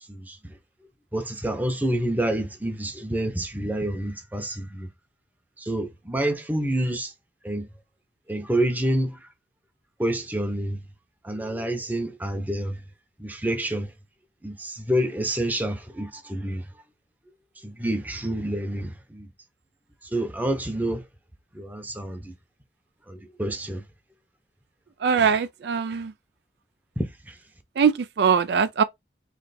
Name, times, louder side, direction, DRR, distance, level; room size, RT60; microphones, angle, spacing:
voice 1, 1.1-4.9 5.6-7.1 7.4-7.7 8.3-9.2 10.0-10.8 11.2-12.8 13.2-13.9 14.4-16.6 17.6-19.3 20.1-21.0 21.5-22.3 23.1-23.8 27.0-27.3, right 1 dB, 10° right, 0.8 m, -28 dB
voice 2, 25.0-26.1 27.8-27.9 28.2-28.8, right 6 dB, 65° right, 0.4 m, -21 dB
3.3 x 3.1 x 4.1 m
head